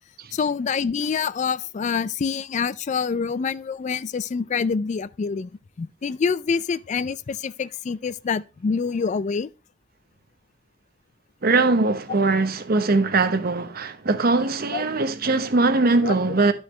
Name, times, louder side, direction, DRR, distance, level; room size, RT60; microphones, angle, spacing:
voice 1, 0.3-5.5 5.8-9.5 14.7-14.8 16.0-16.2, left 5 dB, 40° left, 0.3 m, -26 dB
voice 2, 11.4-16.5, right 3 dB, 55° right, 1.0 m, -21 dB
11.0 x 6.4 x 3.2 m
head